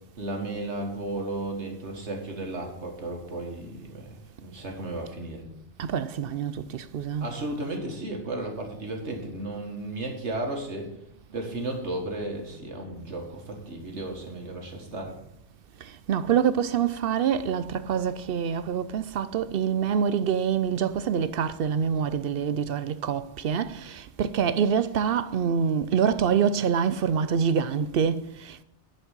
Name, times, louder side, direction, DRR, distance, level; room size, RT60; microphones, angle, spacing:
voice 1, 0.2-5.5 7.2-10.9 11.3-15.1, right 2 dB, 75° right, 2.1 m, -34 dB
voice 2, 5.8-7.3 16.1-28.6, right 7 dB, 60° right, 0.7 m, -26 dB
10.5 x 5.3 x 7.3 m
omnidirectional pair, 1.2 m